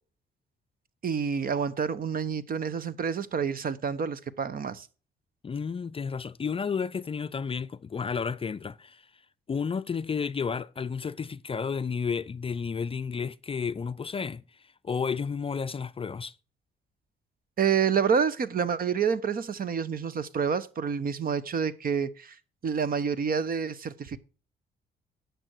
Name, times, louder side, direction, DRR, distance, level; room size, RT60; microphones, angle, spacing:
voice 1, 1.0-4.9 17.6-22.3 22.6-24.2, right 6 dB, 45° right, 0.9 m, -28 dB
voice 2, 5.4-9.1 9.5-14.4 14.8-16.3, left 6 dB, 30° left, 0.4 m, -32 dB
10.5 x 6.7 x 4.6 m
cardioid pair, 90°, 20 cm